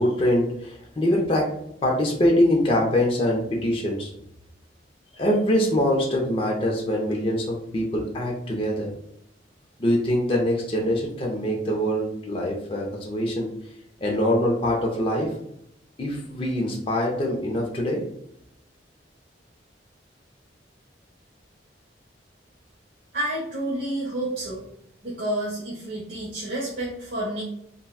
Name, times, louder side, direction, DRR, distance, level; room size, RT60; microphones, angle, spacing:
voice 1, 0.0-4.1 5.2-8.9 9.8-13.5 14.0-15.3 16.0-18.0, left 1 dB, 30° left, -2 dB, 0.5 m, -24 dB
voice 2, 23.1-24.6 25.0-27.4, right 1 dB, 70° right, -6 dB, 0.8 m, -29 dB
3.9 x 2.2 x 2.3 m, 0.75 s
head